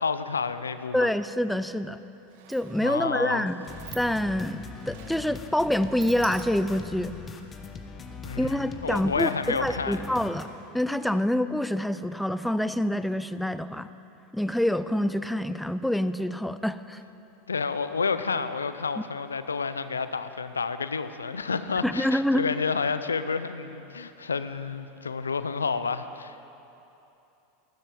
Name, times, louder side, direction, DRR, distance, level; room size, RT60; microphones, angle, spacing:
voice 1, 0.0-1.1 2.8-3.5 8.2-10.0 17.5-26.5, left 5 dB, 90° left, 12 dB, 0.5 m, -30 dB
voice 2, 0.9-2.0 2.5-3.7 3.9-7.2 8.4-10.5 10.7-13.9 14.3-17.0 19.0-19.1 21.8-22.4, left 1 dB, 5° left, 13 dB, 0.5 m, -26 dB
Sliding door, 2.0-7.0, right 9 dB, 65° right, 1.2 m, -48 dB
sound 1, 3.7-10.5, left 4 dB, 25° left, 1.3 m, -41 dB
15.0 x 12.5 x 5.4 m, 2.9 s
hypercardioid pair, 85°, 0 cm